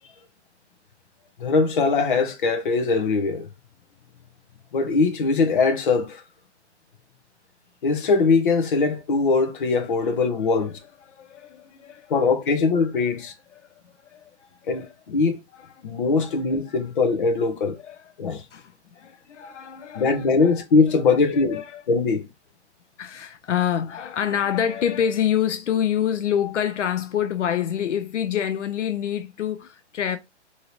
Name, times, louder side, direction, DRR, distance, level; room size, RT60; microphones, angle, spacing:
voice 1, 1.4-3.5 4.7-6.2 7.8-10.8 12.1-13.3 14.7-15.4 15.8-17.8 18.2-18.4 20.0-21.6 21.9-22.2, left 4 dB, 45° left, 0.6 m, -21 dB
voice 2, 11.1-12.3 13.6-14.3 14.7-14.9 15.6-15.7 16.2-16.4 17.8-18.1 18.5-20.6 20.9-21.8 23.0-30.2, left 9 dB, 90° left, 0.7 m, -27 dB
2.8 x 2.8 x 3.0 m
hypercardioid pair, 170°, 35 cm